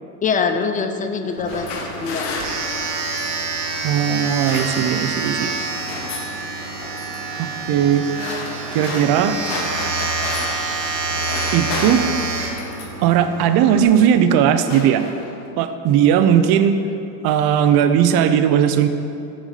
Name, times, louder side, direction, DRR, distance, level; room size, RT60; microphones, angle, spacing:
voice 1, 0.2-2.3, left 5 dB, 20° left, 7 dB, 0.4 m, -23 dB
sound 1, 1.3-3.5 4.1-5.2 5.4-6.4 6.8-7.2 7.9-10.7 11.0-13.1 13.9-14.1 14.4-15.5, left 3 dB, 80° left, 1.0 m, -32 dB
Domestic sounds home sounds, 1.4-13.8, right 3 dB, 75° right, 1.1 m, -27 dB
voice 2, 3.8-5.5 7.4-8.1 8.7-9.4 11.5-12.1 13.0-15.0 15.6-16.8 17.2-18.9, right 9 dB, 50° right, 9 dB, 0.6 m, -17 dB
6.2 x 6.1 x 4.0 m, 2.6 s
hypercardioid pair, 75°, 48 cm